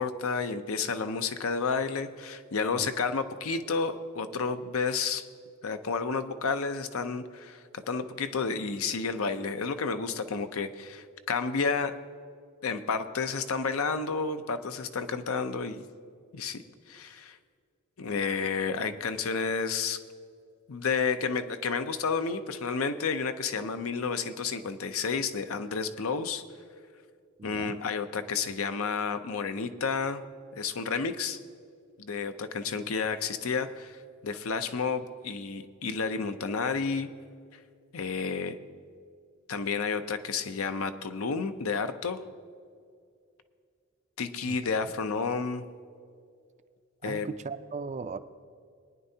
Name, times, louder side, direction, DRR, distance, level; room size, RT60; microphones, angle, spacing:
voice 1, 0.0-5.2 5.6-12.0 12.6-15.8 16.3-16.6 16.9-17.4 18.0-20.0 20.7-26.4 27.4-30.2 30.6-31.4 32.0-37.1 37.9-38.6 39.5-42.2 44.2-45.6 47.0-47.3, left 5 dB, 80° left, 9 dB, 0.6 m, -31 dB
voice 2, 27.4-27.8 44.5-44.9 47.0-48.2, right 4 dB, 35° right, 12 dB, 0.4 m, -38 dB
21.5 x 9.7 x 2.8 m, 2.2 s
head